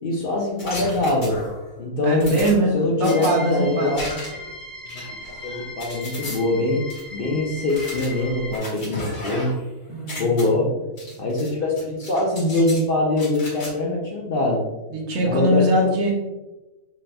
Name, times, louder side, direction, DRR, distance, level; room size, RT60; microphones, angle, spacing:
voice 1, 0.0-1.4 1.8-2.3 2.7-4.1 4.9-5.0 5.4-6.9 7.1-9.6 10.2-10.7 11.2-14.7 15.2-15.7, left 2 dB, 55° left, -2 dB, 0.7 m, -23 dB
sound 1, 0.6-1.7 2.2-3.3 3.9-4.5 4.9-6.4 6.9-7.0 7.7-9.7 9.9-10.4 11.0-11.5 11.8-12.8 13.2-13.7, left 1 dB, 90° left, 2.1 m, -35 dB
voice 2, 2.0-4.0 9.9-10.6 14.9-16.1, equal, 80° right, 0 dB, 1.3 m, -22 dB
sound 2, 3.1-8.6, left 2 dB, ahead, 0.5 m, -38 dB
4.1 x 3.8 x 2.2 m, 1.1 s
omnidirectional pair, 1.4 m